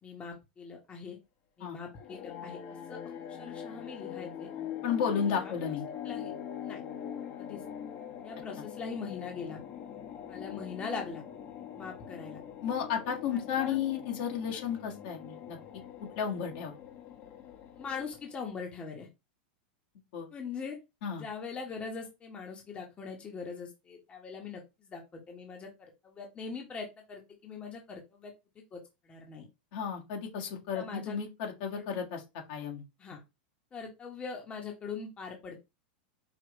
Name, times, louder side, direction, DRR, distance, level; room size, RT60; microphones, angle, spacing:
voice 1, 0.0-1.2 1.6-2.6 2.9-3.0 3.3-4.5 5.1-5.5 6.0-6.3 6.6-6.8 7.4-7.6 8.2-9.6 10.3-11.2 11.7-12.4 13.1-13.2 13.6-13.8 17.8-19.1 20.3-20.8 21.2-28.3 28.7-29.5 30.7-31.2 31.7-32.0 33.0-33.2 33.7-35.6, left 5 dB, 20° left, 1 dB, 1.2 m, -41 dB
sound 1, 1.9-18.5, left 9 dB, 45° left, 1.1 m, -43 dB
voice 2, 4.8-5.8 12.6-15.6 16.1-16.8 20.1-20.3 21.0-21.2 29.7-32.2 32.5-32.8 33.1-33.2, left 7 dB, 60° left, 1 dB, 1.6 m, -33 dB
4.9 x 2.8 x 3.0 m, 0.24 s
hypercardioid pair, 120°, 5 cm